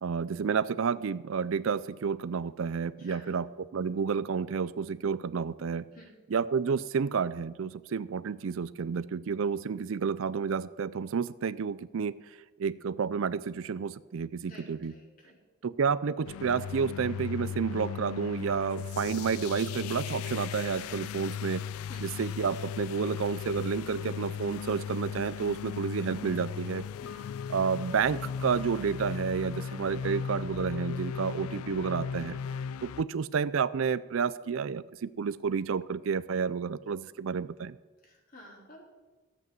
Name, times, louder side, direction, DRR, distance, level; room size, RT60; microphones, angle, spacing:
voice 1, 0.0-3.5 3.7-5.9 6.3-12.2 12.6-14.9 15.6-21.7 22.0-26.8 27.5-32.4 32.8-37.8, right 6 dB, 65° right, 16 dB, 0.4 m, -30 dB
voice 2, 3.0-3.4 5.9-6.1 14.4-15.3 21.9-22.0 27.0-27.3 38.0-38.8, left 1 dB, 40° left, -2 dB, 4.1 m, -51 dB
sound 1, 16.2-33.0, left 7 dB, 80° left, 0.3 m, -37 dB
13.5 x 8.4 x 7.3 m, 1.2 s
head